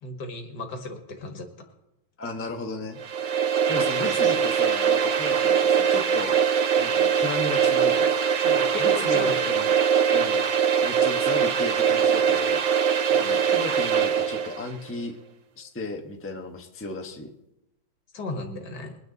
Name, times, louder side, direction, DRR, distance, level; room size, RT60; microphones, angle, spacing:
voice 1, 0.0-1.5 4.0-4.3 8.4-9.5 13.1-13.4 18.1-19.0, left 2 dB, 65° left, 5 dB, 2.3 m, -36 dB
voice 2, 2.2-3.0 3.7-6.4 6.8-8.1 8.8-9.7 10.1-10.4 10.8-12.6 13.5-15.1 15.6-17.3, left 2 dB, 10° left, 3 dB, 0.8 m, -34 dB
sound 1, 3.0-14.6, right 7 dB, 50° right, 1.0 m, -22 dB
22.5 x 9.5 x 4.0 m, 0.89 s
omnidirectional pair, 2.0 m